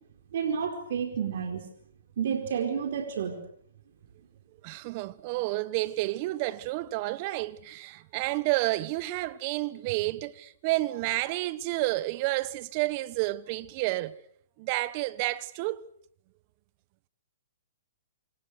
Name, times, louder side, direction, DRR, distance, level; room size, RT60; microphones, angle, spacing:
voice 1, 0.3-1.7 2.2-3.4, right 7 dB, 60° right, 4.6 m, -30 dB
voice 2, 4.6-14.1 14.6-15.8, right 18 dB, 40° right, 1.3 m, -30 dB
27.5 x 26.5 x 6.7 m
hypercardioid pair, 140°, 0 cm